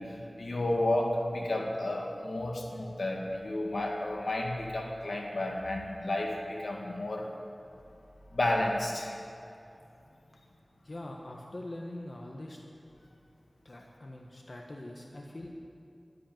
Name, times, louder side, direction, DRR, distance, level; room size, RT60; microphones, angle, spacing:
voice 1, 0.0-7.3 8.3-9.2, left 1 dB, 80° left, 0 dB, 2.0 m, -32 dB
voice 2, 10.8-12.6 13.6-15.6, left 1 dB, 55° left, 0 dB, 1.4 m, -43 dB
12.0 x 11.0 x 9.3 m, 2.7 s
wide cardioid pair, 55°, 0 cm